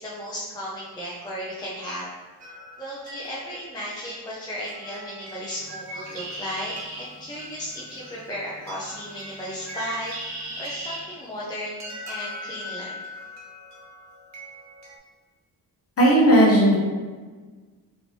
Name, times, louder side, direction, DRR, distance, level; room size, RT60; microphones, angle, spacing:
voice 1, 0.0-2.1 2.4-10.1 10.6-12.9, equal, 10° left, -7 dB, 0.3 m, -35 dB
sound 1, 2.4-15.0, left 1 dB, 45° right, 0.6 m, -43 dB
Bird, 5.5-11.0, right 1 dB, 65° right, 0.9 m, -38 dB
voice 2, 16.0-16.8, right 1 dB, 35° left, -5 dB, 1.0 m, -15 dB
2.9 x 2.9 x 3.0 m, 1.4 s
wide cardioid pair, 180°, 40 cm